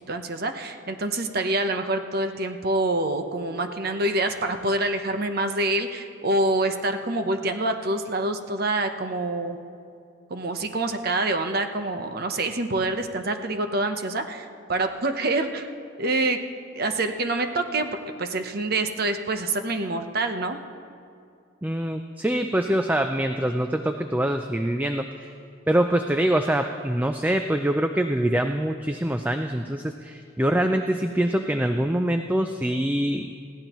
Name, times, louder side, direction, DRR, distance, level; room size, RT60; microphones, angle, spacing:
voice 1, 0.1-9.6 10.3-15.7 16.0-16.4 16.8-17.9 18.2-20.6, right 2 dB, 50° right, 7 dB, 0.8 m, -26 dB
voice 2, 21.6-25.3 25.7-33.3, right 1 dB, 10° right, 6 dB, 0.3 m, -24 dB
20.5 x 16.0 x 3.0 m, 2.4 s
head